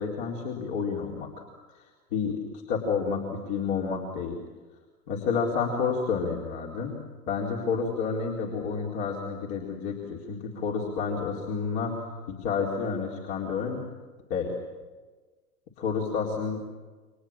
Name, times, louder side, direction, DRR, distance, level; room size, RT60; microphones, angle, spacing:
voice 1, 0.0-1.4 2.1-4.4 5.1-6.9 7.3-13.8 14.3-14.5 15.8-16.6, left 5 dB, 50° left, -2 dB, 4.3 m, -30 dB
30.0 x 24.5 x 7.3 m, 1.3 s
figure-of-eight pair, 100°, 47 cm